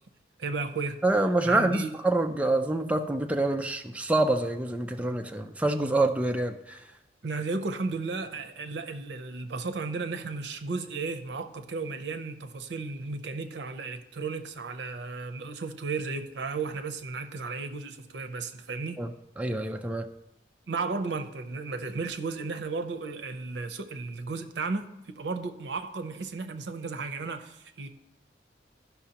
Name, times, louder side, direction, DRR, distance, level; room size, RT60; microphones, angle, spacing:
voice 1, 0.4-1.0 1.4-1.9 7.2-19.0 20.7-24.9 25.2-27.9, right 4 dB, 85° right, 0.6 m, -34 dB
voice 2, 1.0-6.8 19.0-19.1 19.4-20.0, right 2 dB, 10° right, 0.4 m, -26 dB
13.5 x 5.7 x 2.9 m
head